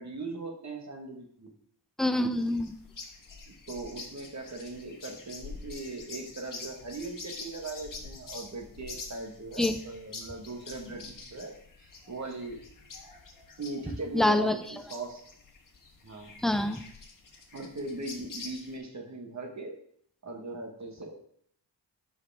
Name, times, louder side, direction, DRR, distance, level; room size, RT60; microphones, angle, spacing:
voice 1, 0.0-1.5 3.5-12.6 13.6-15.2 16.0-16.5 17.5-19.8 20.2-21.2, right 2 dB, 40° right, 3 dB, 1.4 m, -39 dB
voice 2, 2.0-2.7 9.6-9.8 14.1-14.6 16.4-16.8, left 1 dB, ahead, 8 dB, 0.5 m, -25 dB
sound 1, 2.3-18.8, left 4 dB, 50° left, 1.4 m, -46 dB
12.0 x 5.0 x 3.5 m, 0.66 s
wide cardioid pair, 130°, 42 cm